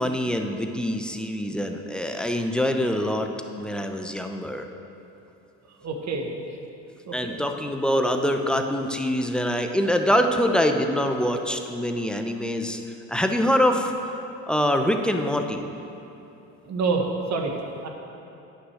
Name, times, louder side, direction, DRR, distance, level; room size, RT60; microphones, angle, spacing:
voice 1, 0.0-3.3 3.6-4.7 7.1-12.8 13.1-13.9 14.5-15.7, equal, ahead, 5 dB, 0.8 m, -24 dB
voice 2, 5.8-6.3 7.1-7.4 16.6-17.6 17.8-17.9, right 4 dB, 50° right, 2 dB, 1.5 m, -27 dB
9.3 x 6.4 x 6.4 m, 2.9 s
supercardioid pair, 75°, 36 cm